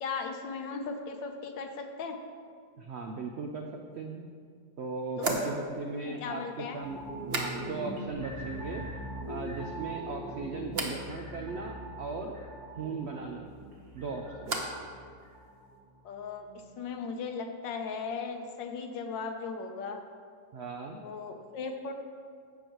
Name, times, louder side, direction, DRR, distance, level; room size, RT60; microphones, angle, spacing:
voice 1, 0.0-2.2 5.2-5.5 6.0-6.8 16.0-16.5 16.8-20.0 21.0-21.9, left 5 dB, 90° left, 5 dB, 1.5 m, -37 dB
voice 2, 2.8-4.3 4.8-7.0 7.3-8.8 9.3-12.4 12.8-13.5 13.9-14.6 20.5-21.0, right 4 dB, 85° right, 2 dB, 0.5 m, -38 dB
sound 1, 3.9-4.0 5.2-8.0 8.3-8.9 9.2-9.8 10.7-11.0 13.4-14.9 15.2-15.8, right 2 dB, 40° right, 1.0 m, -38 dB
sound 2, 6.8-16.1 16.5-16.6, right 1 dB, 60° right, 2.7 m, -42 dB
14.5 x 6.5 x 3.0 m, 2.1 s
omnidirectional pair, 1.9 m